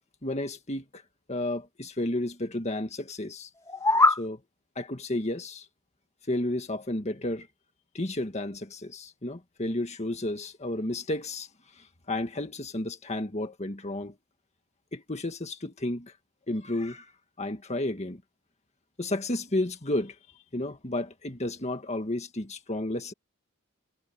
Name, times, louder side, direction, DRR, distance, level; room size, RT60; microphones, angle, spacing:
voice 1, 0.2-1.0 1.3-3.5 4.1-4.4 4.8-5.7 6.3-7.5 7.9-11.5 11.8-14.1 14.9-16.1 16.5-17.1 17.4-18.2 19.0-20.2 20.5-23.1, left 1 dB, 35° left, 1.9 m, -32 dB
sound 1, 3.5-4.3, left 2 dB, 15° left, 2.3 m, -22 dB
head